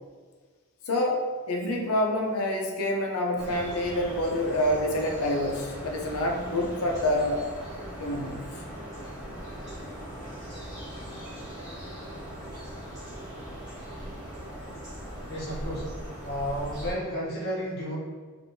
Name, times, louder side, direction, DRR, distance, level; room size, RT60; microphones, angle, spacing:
voice 1, 0.9-1.2 1.5-7.5 8.0-8.4, left 1 dB, 80° left, 1 dB, 0.6 m, -27 dB
sound 1, 3.4-16.9, equal, 15° right, 1.4 m, -39 dB
voice 2, 15.3-16.0 16.2-17.9, equal, 45° left, -7 dB, 0.9 m, -32 dB
3.4 x 2.5 x 2.7 m, 1.5 s
head